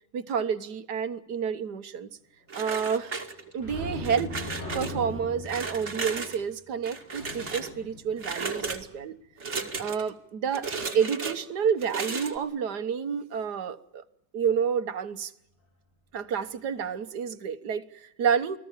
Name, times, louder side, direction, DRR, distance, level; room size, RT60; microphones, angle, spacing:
voice 1, 0.1-2.1 2.5-3.1 3.5-4.3 4.7-9.1 9.8-14.0 14.3-15.3 16.1-18.6, right 7 dB, 80° right, 1.7 m, -29 dB
sound 1, 2.5-3.6 4.0-4.9 5.4-6.4 6.8-7.7 8.2-8.8 9.4-10.1 10.5-11.3 11.8-12.4, right 4 dB, 45° right, 2.7 m, -34 dB
sound 2, 3.6-9.0 16.3-16.5 16.8-17.0, left 2 dB, 40° left, 7.1 m, -40 dB
29.0 x 20.5 x 7.4 m
omnidirectional pair, 1.7 m